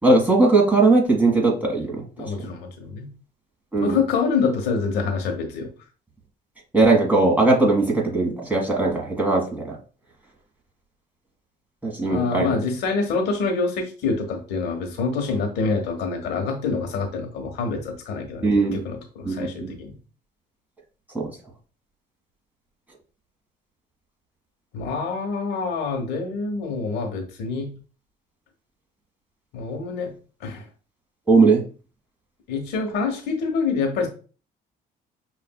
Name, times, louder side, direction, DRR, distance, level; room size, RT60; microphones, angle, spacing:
voice 1, 0.0-2.3 3.7-4.0 6.7-9.8 11.8-12.6 18.4-18.8 19.2-19.7 21.1-21.3 31.3-31.6, right 3 dB, 10° right, -2 dB, 1.5 m, -19 dB
voice 2, 2.2-3.1 3.8-5.7 12.0-20.0 24.7-27.7 29.5-30.1 30.4-30.6 32.5-34.1, left 4 dB, 85° left, 3 dB, 1.1 m, -26 dB
6.4 x 2.6 x 2.2 m, 0.36 s
cardioid pair, 110°, 17 cm